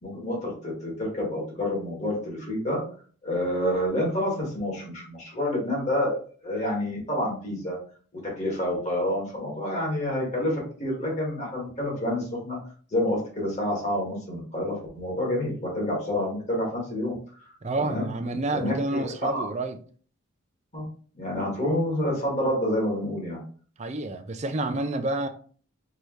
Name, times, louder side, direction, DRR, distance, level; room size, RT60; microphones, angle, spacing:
voice 1, 0.0-2.8 3.2-7.8 8.4-12.6 12.9-17.1 17.8-18.1 18.5-19.5 20.7-20.8 21.1-23.4, left 1 dB, 35° left, 1.9 m, -28 dB
voice 2, 17.6-19.8 23.8-25.3, right 2 dB, 35° right, 0.4 m, -29 dB
4.8 x 2.7 x 3.1 m
head